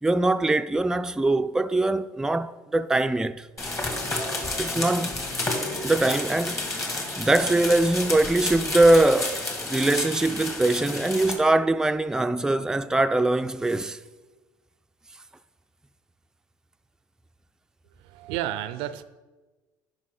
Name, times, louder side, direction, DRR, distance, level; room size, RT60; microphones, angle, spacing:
voice 1, 0.0-3.5 4.6-5.3 5.8-6.7 7.2-14.0, right 2 dB, 5° right, 0.3 m, -22 dB
sound 1, 3.6-11.4, left 2 dB, 35° left, 2.1 m, -30 dB
voice 2, 18.1-19.0, right 12 dB, 75° right, 0.4 m, -31 dB
9.7 x 5.3 x 3.9 m
hypercardioid pair, 65°, 9 cm